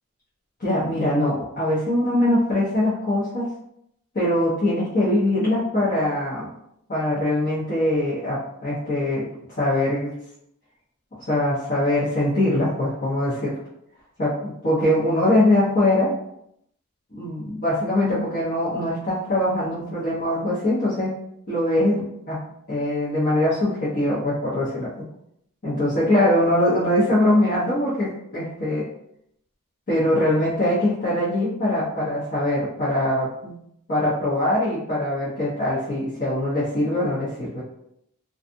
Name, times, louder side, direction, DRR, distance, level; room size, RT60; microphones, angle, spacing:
voice 1, 0.6-3.5 4.1-6.5 6.9-9.3 9.6-10.1 11.3-13.6 14.2-16.1 17.1-21.1 21.5-22.4 22.7-24.9 25.6-28.8 29.9-33.6 33.9-37.6, left 1 dB, 40° left, -10 dB, 0.8 m, -22 dB
2.5 x 2.4 x 2.5 m, 0.75 s
head